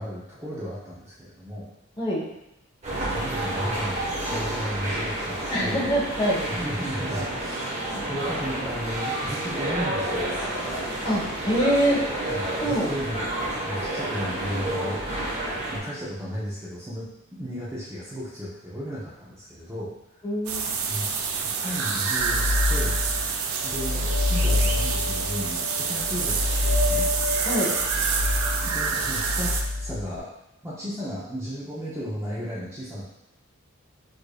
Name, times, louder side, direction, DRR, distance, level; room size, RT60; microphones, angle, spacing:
voice 1, 0.0-1.7 2.9-5.8 6.5-10.4 12.3-15.0 15.4-17.1 17.4-20.2 20.9-21.1 21.4-23.0 23.6-27.1 28.6-30.3 30.6-33.0, equal, 10° right, -8 dB, 0.5 m, -34 dB
sound 1, 2.8-15.8, right 1 dB, 30° right, 0.9 m, -30 dB
voice 2, 5.5-6.4 11.0-12.0 12.6-12.9 20.2-20.7 27.5-27.7, equal, 25° left, -5 dB, 0.9 m, -24 dB
sound 2, 20.5-29.6, right 5 dB, 90° right, 0.4 m, -27 dB
sound 3, 22.2-23.3 23.6-30.2, left 2 dB, 75° left, 0.6 m, -27 dB
4.7 x 2.5 x 2.2 m, 0.87 s
head